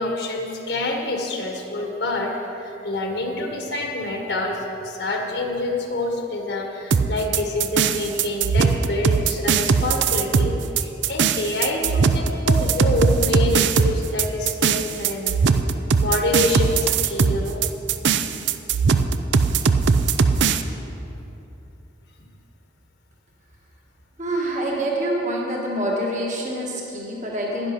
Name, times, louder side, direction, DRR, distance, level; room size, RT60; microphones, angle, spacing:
voice 1, 0.0-15.4 16.0-17.7, left 2 dB, 70° left, 2 dB, 1.5 m, -26 dB
sound 1, 6.9-20.6, right 5 dB, 75° right, 0.5 m, -20 dB
voice 2, 24.2-27.7, right 1 dB, 40° right, -2 dB, 1.6 m, -26 dB
10.5 x 10.5 x 6.0 m, 2.9 s
head